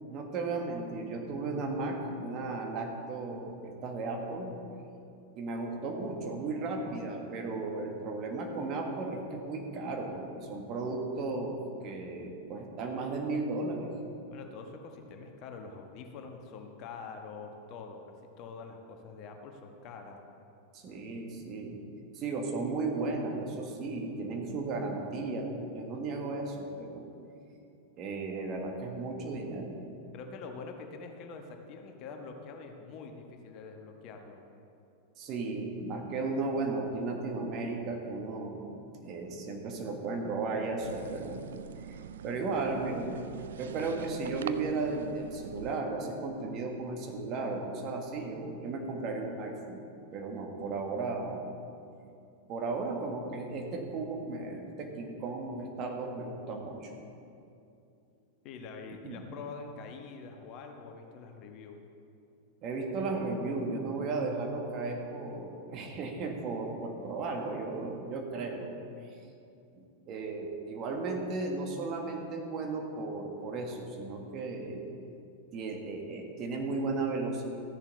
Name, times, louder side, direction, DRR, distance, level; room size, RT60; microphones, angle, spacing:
voice 1, 0.1-4.6 5.3-13.9 20.7-21.8 22.1-27.1 28.0-29.8 35.2-38.6 39.0-41.4 41.8-41.9 42.2-43.2 43.6-49.9 50.1-51.4 52.5-56.9 59.0-59.2 62.6-68.7 69.0-69.2 69.7-74.8 75.5-77.4, right 3 dB, 35° right, 1 dB, 1.7 m, -35 dB
voice 2, 14.3-18.0 18.4-20.2 30.1-34.4 58.4-61.8, left 4 dB, 40° left, 3 dB, 1.2 m, -45 dB
sound 1, 40.8-45.8, right 9 dB, 60° right, 0.4 m, -44 dB
14.5 x 10.5 x 4.1 m, 2.6 s
figure-of-eight pair, 90°, 0 cm